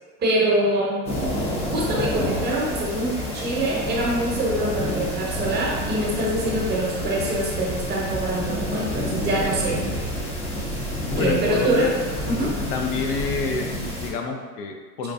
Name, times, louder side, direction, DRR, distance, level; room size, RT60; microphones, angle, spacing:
voice 1, 0.2-1.0 1.7-9.8 11.2-11.9 12.3-12.5, right 1 dB, 20° right, -4 dB, 0.7 m, -24 dB
sound 1, 1.1-14.1, equal, 15° left, 0.4 m, -29 dB
voice 2, 11.2-11.9 12.7-15.1, left 4 dB, 80° left, 3 dB, 0.6 m, -28 dB
4.5 x 2.2 x 2.5 m, 1.5 s
supercardioid pair, 115°, 46 cm